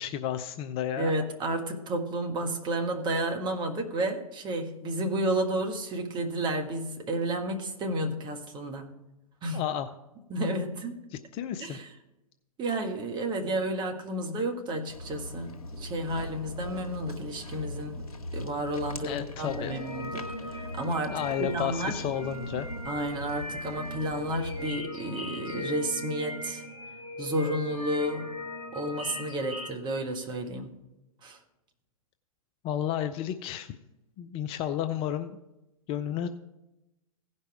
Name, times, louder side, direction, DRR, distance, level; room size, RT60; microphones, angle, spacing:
voice 1, 0.0-1.1 9.5-9.9 11.1-11.8 19.0-19.8 21.1-22.7 32.6-33.8 34.2-35.4 35.9-36.3, left 10 dB, 30° left, 10 dB, 0.5 m, -32 dB
voice 2, 1.0-8.9 9.4-9.6 10.3-11.0 11.6-11.9 12.6-18.0 18.3-22.0 22.8-26.6 27.2-28.3 28.7-30.7 31.2-31.4, right 1 dB, 25° right, 4 dB, 1.5 m, -31 dB
Walk footsteps, 14.9-24.8, left 1 dB, 80° left, 1.2 m, -41 dB
sound 1, 19.4-29.7, left 1 dB, 80° right, 3.2 m, -39 dB
16.0 x 5.4 x 4.7 m, 0.95 s
figure-of-eight pair, 110°, 18 cm